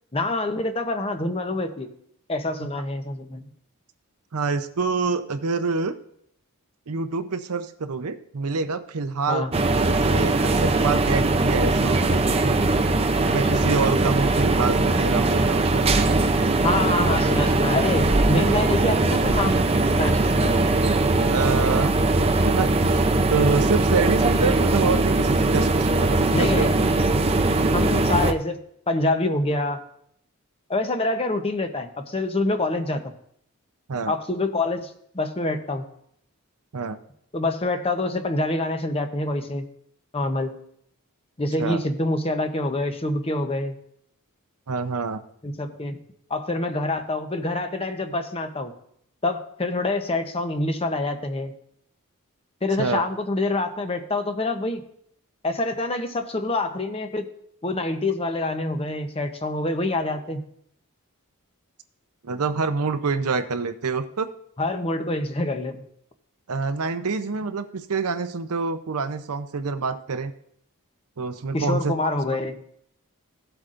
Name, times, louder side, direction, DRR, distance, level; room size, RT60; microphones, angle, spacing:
voice 1, 0.1-1.9 2.3-3.4 9.3-9.5 13.5-13.6 16.6-19.6 19.9-20.8 26.3-26.7 27.6-28.6 28.9-29.8 30.7-33.1 34.1-35.9 37.3-39.7 40.1-40.5 41.4-43.8 45.4-46.0 46.3-48.7 49.2-51.5 52.6-54.8 55.4-57.3 57.6-60.4 64.6-65.8 71.5-72.6, left 2 dB, 25° left, 7 dB, 0.8 m, -26 dB
voice 2, 4.3-5.9 6.9-9.5 9.9-12.2 13.3-16.2 21.3-21.9 22.4-26.7 33.9-34.1 36.7-37.0 41.6-41.8 44.7-45.2 52.8-53.1 62.2-64.3 66.5-70.3 71.2-72.1, right 4 dB, 80° right, 9 dB, 0.7 m, -26 dB
sound 1, 9.5-28.3, right 2 dB, 25° right, 0.5 m, -20 dB
16.0 x 7.9 x 2.5 m, 0.71 s
head